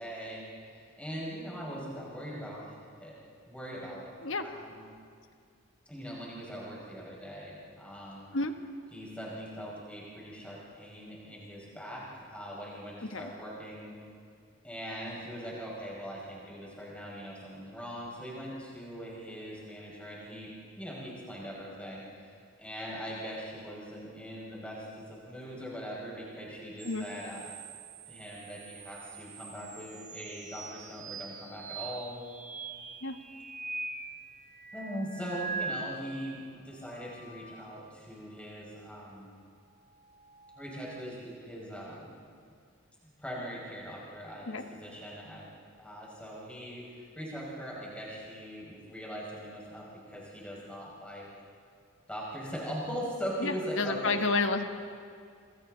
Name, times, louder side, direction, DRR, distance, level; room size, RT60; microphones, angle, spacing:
voice 1, 0.0-3.2 3.5-4.8 5.9-8.3 8.9-14.0 14.6-27.5 28.1-32.3 34.7-39.3 40.5-42.2 43.2-45.5 45.8-51.3 52.1-54.2, equal, 5° left, -5 dB, 5.4 m, -41 dB
sound 1, 26.8-36.3 36.8-38.2 40.0-41.1, right 4 dB, 35° right, 1.2 m, -43 dB
voice 2, 53.4-54.6, left 3 dB, 60° left, 6 dB, 1.3 m, -30 dB
27.0 x 26.5 x 3.9 m, 2.2 s
head